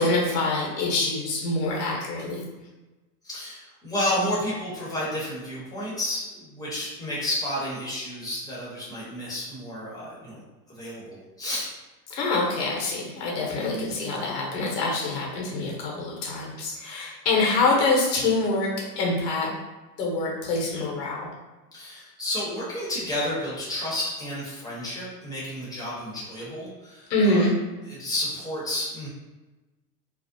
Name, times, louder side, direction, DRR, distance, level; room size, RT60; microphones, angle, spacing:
voice 1, 0.0-2.4 12.1-19.5 20.0-21.3 27.1-27.5, left 2 dB, 75° left, -2 dB, 1.0 m, -25 dB
voice 2, 3.2-10.4 10.7-11.7 13.7-13.9 21.7-27.5 27.8-29.1, left 1 dB, 10° left, -8 dB, 0.9 m, -31 dB
2.4 x 2.0 x 2.6 m, 1.1 s
hypercardioid pair, 110°, 49 cm